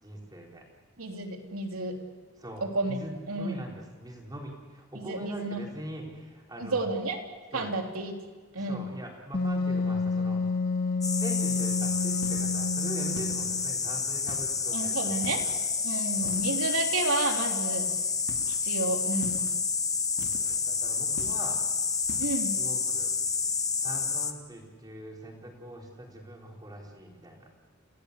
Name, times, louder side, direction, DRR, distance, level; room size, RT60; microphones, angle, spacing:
voice 1, 0.0-0.6 2.4-6.9 7.5-7.7 8.5-10.4 11.2-15.5 16.2-16.4 20.4-21.6 22.6-23.1 23.8-27.5, equal, 20° right, 0 dB, 4.2 m, -42 dB
voice 2, 1.0-2.0 2.6-3.0 3.3-3.6 4.9-5.6 6.6-7.2 7.5-8.1 8.5-8.8 14.7-15.4 15.8-17.9 18.5-19.4 22.2-22.5, right 2 dB, 90° right, 3 dB, 3.3 m, -31 dB
Wind instrument woodwind instrument, 9.3-13.8, left 3 dB, 50° left, 1.7 m, -29 dB
sound 1, 11.0-24.3, left 5 dB, 15° left, 1.2 m, -29 dB
sound 2, 12.2-12.6 13.2-13.7 14.3-14.7 15.2-15.7 16.2-16.8 18.3-18.6 19.2-19.6 20.2-20.6 21.2-21.6 22.1-22.4, left 1 dB, 80° left, 2.2 m, -45 dB
30.0 x 17.0 x 8.3 m, 1.4 s
head